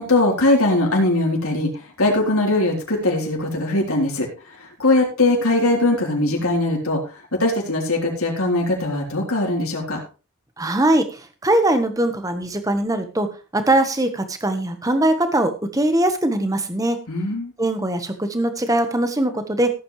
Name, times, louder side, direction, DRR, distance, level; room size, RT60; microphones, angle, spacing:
voice 1, 0.0-1.7 2.0-4.3 4.6-7.0 7.3-10.0 17.1-17.5, left 2 dB, 75° left, 0 dB, 3.8 m, -20 dB
voice 2, 10.6-11.0 11.4-13.3 13.5-17.0 17.6-19.7, right 1 dB, 15° right, 8 dB, 1.2 m, -21 dB
16.5 x 8.6 x 3.3 m, 0.33 s
head